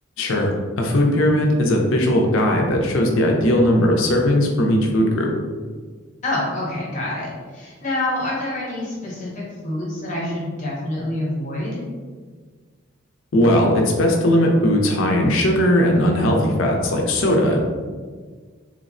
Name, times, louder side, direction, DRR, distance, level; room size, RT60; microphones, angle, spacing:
voice 1, 0.2-0.5 0.8-5.3 13.3-17.6, left 1 dB, 75° left, 1 dB, 0.5 m, -18 dB
voice 2, 6.2-11.8, left 1 dB, 40° left, -5 dB, 0.8 m, -27 dB
3.2 x 2.0 x 2.5 m, 1.5 s
head